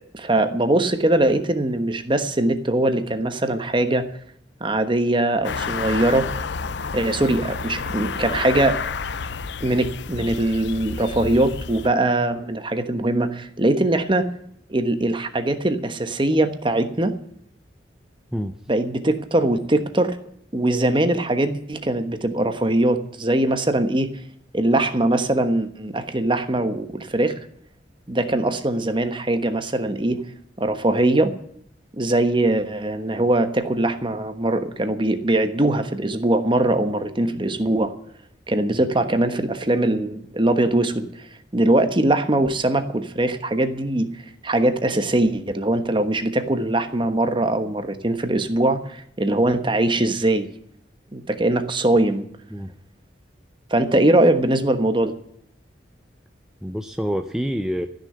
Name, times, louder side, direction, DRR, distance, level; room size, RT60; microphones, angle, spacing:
voice 1, 0.1-4.1 4.6-6.3 6.9-8.8 9.6-14.3 14.7-17.1 18.7-20.2 20.5-24.1 24.5-27.3 28.1-30.2 30.6-31.3 32.0-37.9 38.5-41.1 41.5-44.1 44.4-50.5 51.1-52.3 53.7-55.1, right 1 dB, 25° right, 9 dB, 1.2 m, -21 dB
sound 1, 5.4-11.9, left 5 dB, 70° left, 0.6 m, -30 dB
voice 2, 56.6-57.9, equal, 5° right, 5 dB, 0.6 m, -27 dB
14.5 x 6.6 x 9.9 m, 0.70 s
head